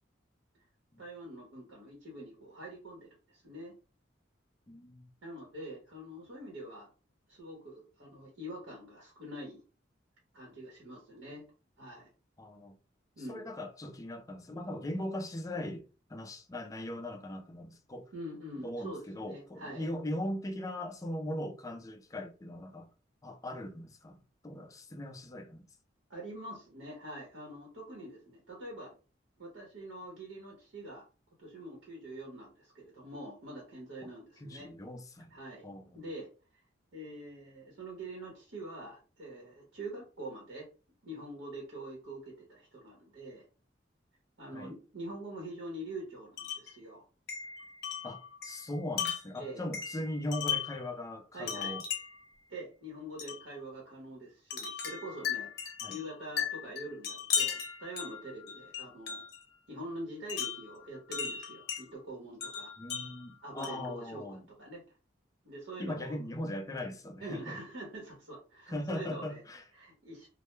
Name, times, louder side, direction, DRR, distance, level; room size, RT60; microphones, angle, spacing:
voice 1, 1.0-3.7 5.2-6.9 7.3-9.6 10.3-11.4 11.8-12.1 13.2-13.4 18.1-19.9 26.1-28.9 29.4-31.0 31.4-34.7 35.3-35.7 35.9-36.3 36.9-40.7 41.0-43.4 44.4-47.0 49.4-49.7 51.3-51.8 52.5-59.3 59.7-62.7 63.4-64.8 65.4-66.2 67.2-69.4 69.7-70.3, right 1 dB, 70° right, 0.9 m, -45 dB
voice 2, 4.7-5.1 12.4-12.8 13.3-15.8 16.1-18.1 18.6-22.9 23.2-25.6 34.0-34.1 34.4-35.3 35.6-36.0 44.5-44.7 48.0-51.8 55.8-56.0 62.8-64.4 65.8-67.6 68.7-69.6, left 1 dB, 20° left, 0.3 m, -39 dB
Wind chime, 46.4-46.7 47.3-50.9 51.5-52.3 53.2-53.4 54.5-59.4 60.3-61.8 62.4-63.9, left 7 dB, 60° left, 0.6 m, -37 dB
2.1 x 2.1 x 3.0 m
head